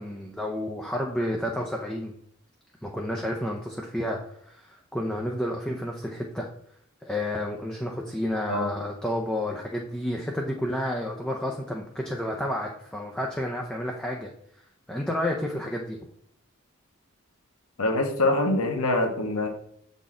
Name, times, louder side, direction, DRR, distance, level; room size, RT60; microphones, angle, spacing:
voice 1, 0.0-2.1 2.8-4.2 4.5-6.5 7.0-14.3 14.9-16.0, left 1 dB, 5° left, 0 dB, 0.5 m, -30 dB
voice 2, 17.8-19.5, left 2 dB, 80° left, 3 dB, 1.2 m, -24 dB
7.0 x 4.1 x 3.7 m, 0.71 s
head